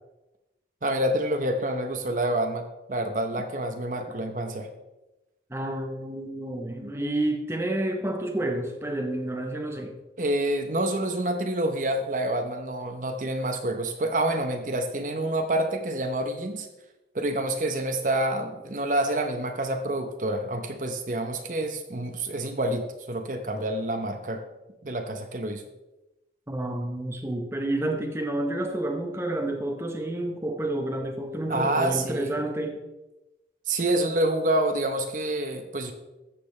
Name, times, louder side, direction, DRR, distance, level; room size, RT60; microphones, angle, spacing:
voice 1, 0.8-4.7 10.2-16.7 17.1-24.4 24.8-25.6 31.5-32.3 33.7-35.9, right 1 dB, 45° right, 0.8 m, -27 dB
voice 2, 5.5-10.0 26.5-32.8, right 1 dB, 15° right, 0.9 m, -29 dB
13.5 x 7.6 x 3.2 m
head